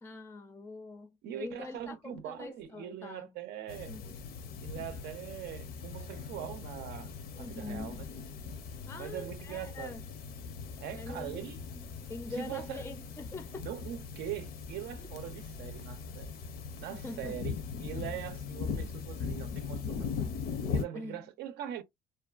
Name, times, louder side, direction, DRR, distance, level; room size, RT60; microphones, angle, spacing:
voice 1, 0.0-3.3 3.9-4.0 7.3-8.1 8.9-10.0 10.9-11.4 11.7-13.7 15.0-15.1 16.9-17.4 20.9-21.2, left 3 dB, 15° left, 0.4 m, -44 dB
voice 2, 1.2-3.9 4.6-8.1 8.9-9.9 10.8-11.6 12.3-12.8 13.6-16.3 16.8-20.1 20.7-21.8, right 11 dB, 75° right, 0.5 m, -42 dB
sound 1, 3.7-20.8, left 5 dB, 65° left, 0.6 m, -40 dB
2.5 x 2.2 x 2.3 m
cardioid pair, 110°, 17 cm